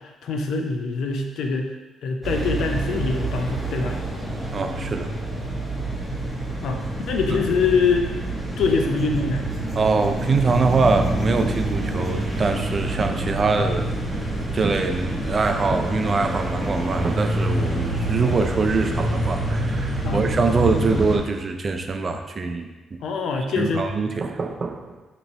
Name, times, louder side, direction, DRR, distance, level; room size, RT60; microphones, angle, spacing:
voice 1, 0.0-1.7 2.0-4.0 6.6-6.8 7.1-8.1 8.6-9.4 20.0-20.3 23.0-23.8, left 4 dB, 75° left, 3 dB, 0.4 m, -24 dB
sound 1, 2.2-21.2, right 1 dB, ahead, 0.7 m, -27 dB
voice 2, 4.5-5.1 9.8-13.9 14.1-14.3 14.5-23.0 23.6-25.0, right 4 dB, 40° right, 6 dB, 0.3 m, -23 dB
2.9 x 2.7 x 4.1 m, 1.2 s
cardioid pair, 90°, 0 cm